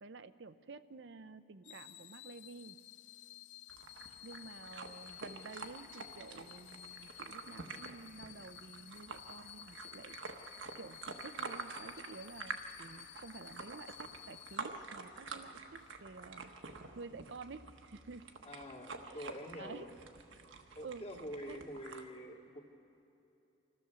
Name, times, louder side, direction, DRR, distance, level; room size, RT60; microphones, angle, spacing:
voice 1, 0.0-2.8 4.2-10.2 10.8-16.5 17.0-18.2 19.0-19.2 19.6-19.9 20.8-21.0 21.4-21.7, right 4 dB, 65° right, 12 dB, 0.6 m, -51 dB
sound 1, 1.6-15.3 15.8-16.0, left 14 dB, 60° left, 0.4 m, -54 dB
sound 2, 3.7-22.0, right 4 dB, 80° right, 1.2 m, -48 dB
voice 2, 18.4-20.0 20.7-22.6, equal, 35° left, 0 dB, 2.1 m, -46 dB
26.0 x 14.5 x 6.9 m, 2.8 s
head